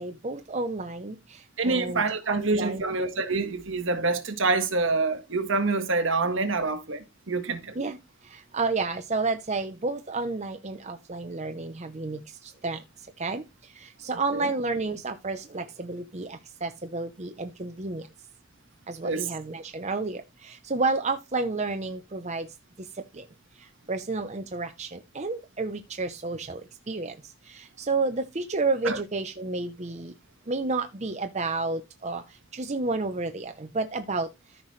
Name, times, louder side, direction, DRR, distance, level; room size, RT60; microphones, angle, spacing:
voice 1, 0.0-3.0 7.8-8.0 8.3-12.8 13.2-13.4 13.8-18.0 18.9-22.5 23.1-23.2 23.9-26.6 26.9-27.1 27.5-30.1 30.5-32.2 32.5-34.3, right 3 dB, 35° right, 0.8 m, -31 dB
voice 2, 1.6-7.8 14.3-14.5 19.0-19.3 28.8-29.0, right 3 dB, 65° right, 1.6 m, -26 dB
14.0 x 5.7 x 3.3 m
head